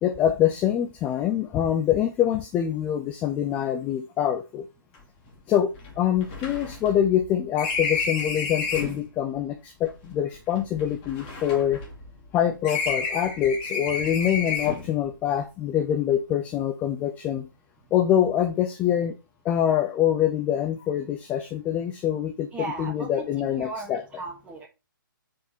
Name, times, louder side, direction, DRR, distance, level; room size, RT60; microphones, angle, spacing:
voice 1, 0.0-4.6 5.5-11.8 12.3-17.5 17.9-19.2 19.4-22.5 22.8-24.0, left 10 dB, 15° left, 0.4 m, -25 dB
sound 1, 4.9-5.0 5.3-5.4 5.7-9.0 9.9-12.3 12.6-15.0, left 4 dB, 30° left, 2.4 m, -31 dB
voice 2, 22.5-24.7, right 3 dB, 10° right, 1.6 m, -37 dB
5.0 x 4.5 x 5.5 m
figure-of-eight pair, 130°, 11 cm